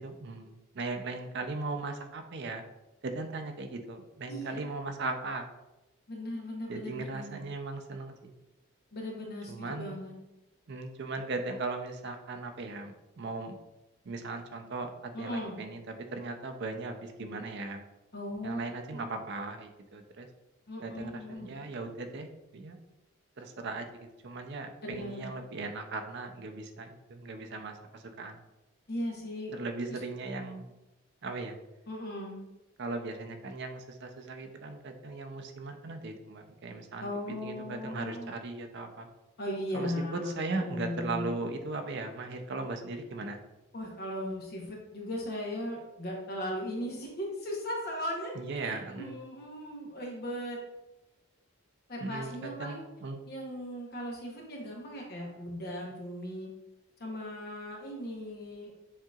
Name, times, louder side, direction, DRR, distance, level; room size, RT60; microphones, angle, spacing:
voice 1, 0.0-2.6 3.0-5.5 6.7-8.3 9.5-10.0 10.7-13.6 14.0-17.8 18.4-20.3 20.8-22.8 23.4-28.4 29.5-30.7 31.2-31.6 32.8-37.1 37.4-39.1 39.7-43.4 48.4-49.2 52.0-53.2, right 3 dB, 50° right, 5 dB, 0.5 m, -38 dB
voice 2, 4.3-4.7 6.1-7.4 8.9-10.1 15.1-15.6 18.1-18.6 18.9-19.1 20.7-21.6 24.8-25.3 28.9-29.5 29.9-30.0 31.9-32.4 37.0-38.3 39.4-41.3 43.7-50.6 51.9-52.8 53.3-56.5 57.0-58.7, equal, 45° left, -2 dB, 0.9 m, -38 dB
7.2 x 2.8 x 2.4 m, 0.97 s
head